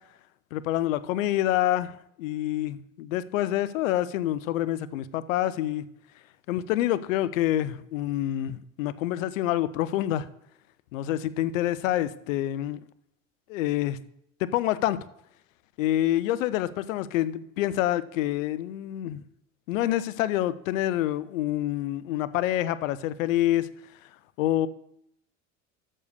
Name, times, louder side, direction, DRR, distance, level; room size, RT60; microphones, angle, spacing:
voice 1, 0.5-5.9 6.5-10.3 10.9-12.8 13.5-14.0 14.4-15.0 15.8-19.2 19.7-23.7 24.4-24.7, left 13 dB, 75° left, 16 dB, 0.7 m, -27 dB
7.6 x 6.7 x 6.5 m, 0.75 s
hypercardioid pair, 75°, 40 cm